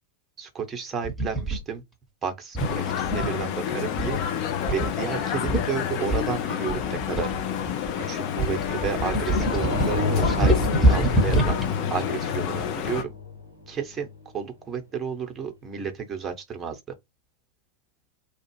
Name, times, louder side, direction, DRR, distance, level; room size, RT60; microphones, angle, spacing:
voice 1, 0.4-1.8 2.2-4.2 4.7-7.3 8.0-11.6 11.9-13.1 13.7-14.1 14.3-16.8, right 6 dB, 20° right, 0.9 m, -32 dB
sound 1, 1.0-1.6 2.6-3.4 4.0-4.3 4.7-4.9 5.2-5.3 5.5-5.7 6.1-7.9 8.4-11.7, right 1 dB, 5° right, 1.1 m, -24 dB
sound 2, 2.6-13.0, left 9 dB, 45° left, 0.7 m, -29 dB
sound 3, 9.4-14.1, left 3 dB, 85° left, 1.9 m, -31 dB
3.1 x 2.4 x 3.0 m
figure-of-eight pair, 90°, 0 cm